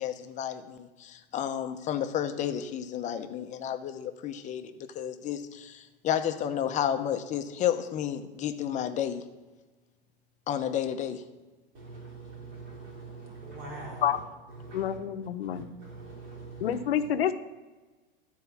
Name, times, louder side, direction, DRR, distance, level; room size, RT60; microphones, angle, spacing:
voice 1, 0.0-9.2 10.5-11.2, left 9 dB, 25° left, 8 dB, 0.8 m, -31 dB
voice 2, 11.7-14.2 14.5-15.0 15.4-17.1, right 3 dB, 40° right, -3 dB, 3.7 m, -43 dB
voice 3, 14.7-15.7 16.6-17.3, left 9 dB, 85° left, 9 dB, 0.9 m, -28 dB
13.0 x 4.7 x 7.1 m, 1.2 s
supercardioid pair, 135°, 29 cm